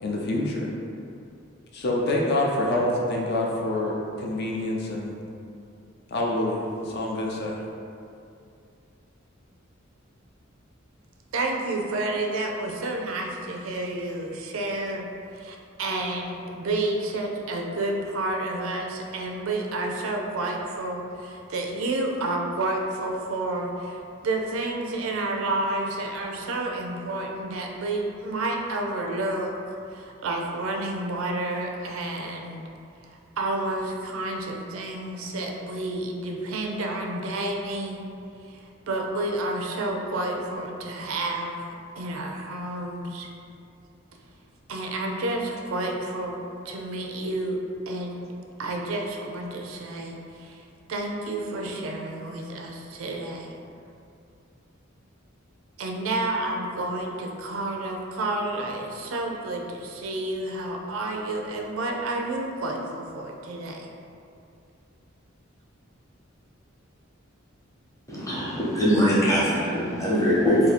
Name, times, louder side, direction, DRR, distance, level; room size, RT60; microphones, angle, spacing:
voice 1, 0.0-0.7 1.7-5.2 6.1-7.6, left 1 dB, 55° left, -2 dB, 0.5 m, -26 dB
voice 2, 11.3-15.1 15.3-32.6 33.0-38.0 38.4-43.3 44.7-47.6 47.9-48.2 48.6-50.6 50.9-53.5 55.8-63.9, right 2 dB, 80° right, 1 dB, 0.4 m, -30 dB
voice 3, 68.1-70.7, equal, 15° left, -8 dB, 0.8 m, -22 dB
2.7 x 2.6 x 4.1 m, 2.5 s
head